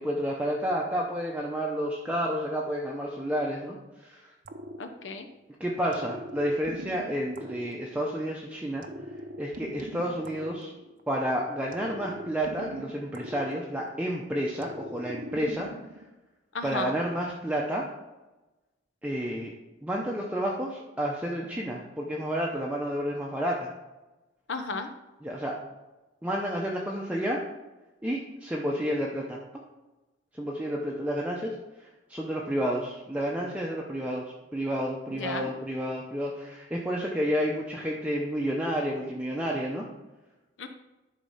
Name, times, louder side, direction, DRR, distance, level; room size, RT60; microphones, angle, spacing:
voice 1, 0.0-4.3 5.6-8.8 9.4-10.7 11.1-15.7 16.6-17.8 19.0-19.5 19.8-23.7 25.2-25.5 26.2-27.4 28.0-29.4 30.3-34.2 34.5-39.9, equal, 5° right, -3 dB, 0.7 m, -30 dB
sound 1, 4.4-5.4 5.9-8.3 8.8-11.2 11.7-14.1 14.6-16.1, right 1 dB, 45° right, 0.7 m, -42 dB
voice 2, 4.8-5.3 16.5-17.0 24.5-24.9 35.1-35.5 40.6-40.7, left 3 dB, 70° left, 7 dB, 0.8 m, -34 dB
10.5 x 4.1 x 5.6 m, 1.1 s
head